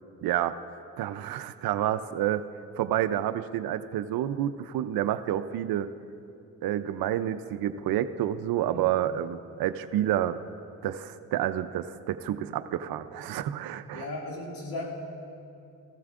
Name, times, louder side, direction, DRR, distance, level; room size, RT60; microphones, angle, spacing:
voice 1, 0.2-0.6 1.0-2.4 2.8-5.9 6.6-10.4 10.8-14.0, right 11 dB, 70° right, 10 dB, 0.5 m, -29 dB
voice 2, 13.9-14.9, left 2 dB, 70° left, -2 dB, 2.3 m, -36 dB
15.0 x 15.0 x 2.5 m, 2.6 s
supercardioid pair, 60°, 37 cm